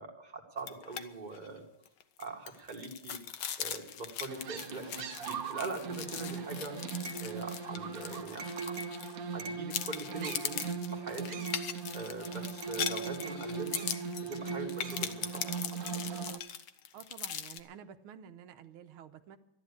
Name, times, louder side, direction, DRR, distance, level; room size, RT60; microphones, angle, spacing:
voice 1, 0.0-1.7 2.2-3.2 3.6-6.8 7.2-10.6 10.9-11.4 11.9-13.9 14.2-15.5, right 3 dB, 25° right, 1 dB, 1.7 m, -42 dB
sound 1, 0.6-1.0 1.3-1.5 1.8-9.3 9.7-17.6, left 9 dB, 65° left, 1.4 m, -40 dB
sound 2, 4.3-16.4, right 5 dB, 55° right, 1.2 m, -39 dB
voice 2, 16.9-19.4, right 8 dB, 90° right, 8 dB, 1.7 m, -50 dB
13.0 x 10.5 x 8.3 m, 0.86 s
omnidirectional pair, 2.3 m